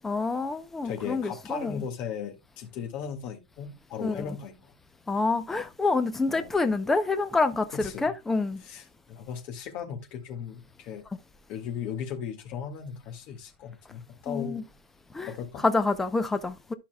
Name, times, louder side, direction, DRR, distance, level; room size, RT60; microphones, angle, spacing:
voice 1, 0.0-1.8 4.0-4.4 5.1-8.6 14.3-14.6 15.1-15.3 15.6-16.7, left 3 dB, 5° left, 0.6 m, -27 dB
voice 2, 0.8-4.7 6.3-6.5 7.7-8.1 8.6-11.1 11.5-14.6 15.3-15.6, left 7 dB, 40° left, 1.8 m, -37 dB
12.0 x 5.7 x 2.2 m
supercardioid pair, 155°, 4 cm